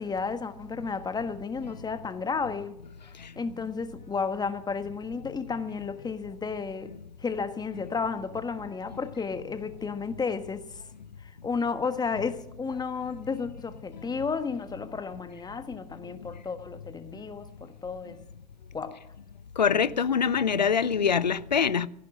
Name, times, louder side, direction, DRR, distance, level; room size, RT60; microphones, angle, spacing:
voice 1, 0.0-2.8 3.3-6.9 7.2-10.8 11.2-18.2 18.7-19.0, left 5 dB, 20° left, 1.4 m, -32 dB
voice 2, 19.6-21.9, left 6 dB, 90° left, 0.5 m, -24 dB
15.0 x 11.0 x 7.7 m
figure-of-eight pair, 75°, 21 cm